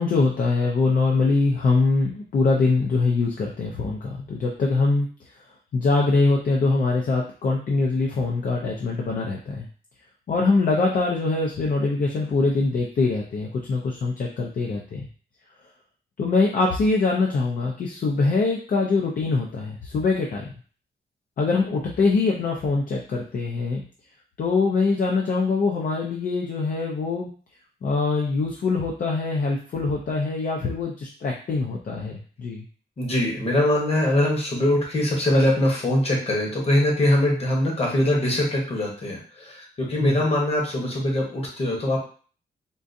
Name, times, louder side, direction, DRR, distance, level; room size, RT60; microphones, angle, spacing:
voice 1, 0.0-5.1 5.7-9.7 10.3-15.1 16.2-20.5 21.4-23.8 24.4-27.3 27.8-32.6 40.0-40.2, left 3 dB, 50° left, -1 dB, 0.5 m, -23 dB
voice 2, 33.0-42.0, left 1 dB, 35° left, -2 dB, 1.0 m, -22 dB
3.7 x 2.4 x 2.6 m, 0.42 s
wide cardioid pair, 170°, 18 cm